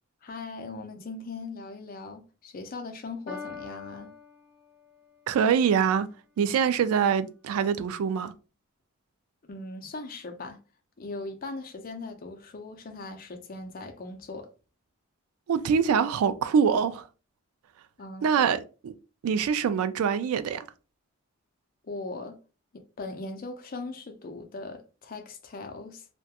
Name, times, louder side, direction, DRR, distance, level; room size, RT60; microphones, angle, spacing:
voice 1, 0.2-4.1 9.5-10.6 11.0-14.5 18.0-18.3 21.8-22.4 22.7-26.1, left 3 dB, 40° left, 0.4 m, -39 dB
Piano, 3.3-5.2, left 5 dB, 5° left, 1.1 m, -43 dB
voice 2, 5.3-6.1 6.4-8.3 15.5-17.1 18.2-18.9 19.2-20.7, right 7 dB, 80° right, 0.3 m, -24 dB
2.3 x 2.2 x 2.8 m
head